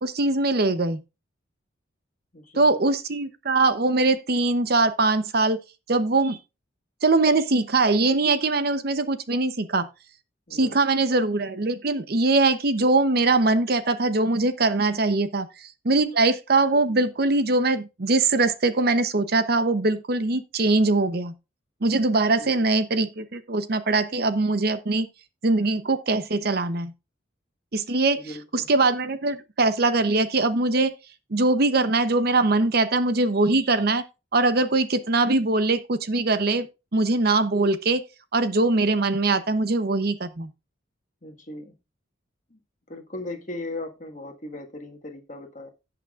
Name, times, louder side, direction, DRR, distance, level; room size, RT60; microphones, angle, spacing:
voice 1, 0.0-1.0 2.6-5.6 5.9-6.4 7.0-9.9 10.5-21.3 21.8-25.1 25.4-26.9 27.7-30.9 31.3-34.0 34.3-36.7 36.9-38.0 38.3-40.5, right 3 dB, 50° right, 0.7 m, -22 dB
voice 2, 2.3-2.8 10.5-11.1 22.4-22.7 28.1-28.7 41.2-41.8 42.5-42.6 42.9-45.7, left 2 dB, 40° left, 1.6 m, -38 dB
17.0 x 5.9 x 2.4 m
head